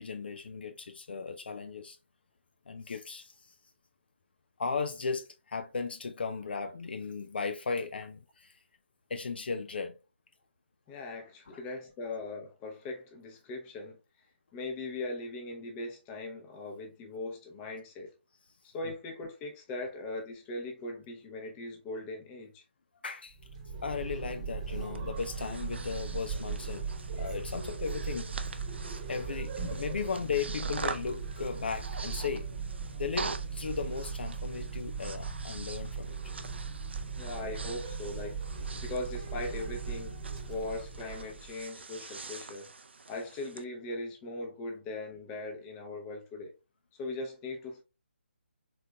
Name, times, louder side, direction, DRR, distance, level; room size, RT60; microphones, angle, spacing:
voice 1, 0.0-2.0 2.7-3.5 4.6-8.6 9.1-9.9 11.5-11.6 23.0-23.4 23.8-26.8 27.2-28.3 29.1-32.5 33.0-36.2, left 5 dB, 55° left, 0.4 m, -36 dB
voice 2, 10.9-14.0 14.5-18.1 18.7-22.6 37.2-38.4 38.8-40.1 40.5-42.7 43.1-46.5 47.0-47.8, left 2 dB, 15° left, 0.8 m, -39 dB
sound 1, 23.3-41.5, right 5 dB, 30° right, 1.1 m, -38 dB
Breathing, 24.9-43.6, right 4 dB, 65° right, 0.5 m, -45 dB
4.1 x 3.8 x 2.2 m
figure-of-eight pair, 145°, 6 cm